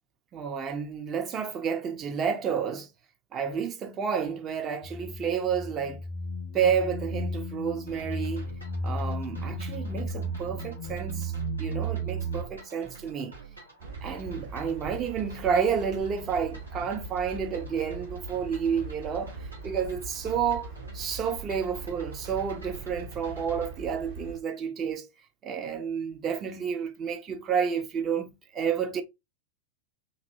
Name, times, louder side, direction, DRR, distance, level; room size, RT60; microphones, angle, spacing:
voice 1, 0.3-2.9 3.3-6.0 6.5-8.4 8.8-13.3 14.0-25.1 25.4-29.0, right 7 dB, 25° right, 0.6 m, -30 dB
sound 1, 4.8-12.4, right 1 dB, 50° left, 0.4 m, -34 dB
sound 2, 7.9-23.7, right 5 dB, 85° right, 1.7 m, -48 dB
sound 3, 13.8-24.4, right 2 dB, 45° right, 1.0 m, -42 dB
4.1 x 2.6 x 2.6 m
figure-of-eight pair, 90°, 0 cm